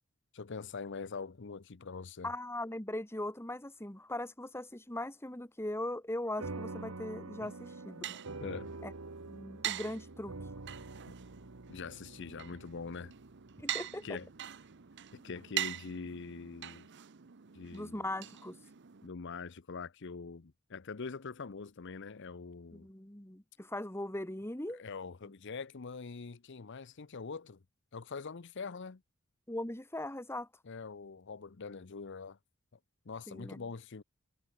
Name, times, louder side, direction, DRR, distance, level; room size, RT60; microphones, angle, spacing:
voice 1, 0.3-2.3 8.4-8.7 11.7-13.1 14.0-14.3 15.1-16.9 17.5-18.0 19.0-22.9 24.7-27.6 27.9-29.0 30.6-32.4 33.1-34.0, left 4 dB, 60° left, 0.7 m, -43 dB
voice 2, 2.2-8.2 8.8-8.9 9.3-10.4 13.6-14.2 17.7-18.6 22.7-24.8 29.5-30.5 33.3-33.6, left 1 dB, 10° left, 2.0 m, -40 dB
sound 1, 6.4-15.1, right 3 dB, 90° right, 1.4 m, -47 dB
sound 2, 7.4-19.1, right 12 dB, 55° right, 0.7 m, -44 dB
head